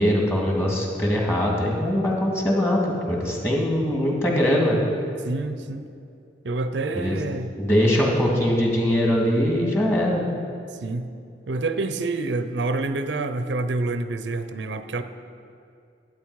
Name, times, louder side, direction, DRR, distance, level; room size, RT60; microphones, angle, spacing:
voice 1, 0.0-4.8 7.0-7.2 7.6-10.2, equal, 15° left, -2 dB, 2.0 m, -22 dB
voice 2, 5.2-5.8 6.4-7.5 10.8-11.1 11.5-15.0, right 2 dB, 85° right, 10 dB, 0.6 m, -27 dB
12.0 x 8.8 x 4.7 m, 2.4 s
head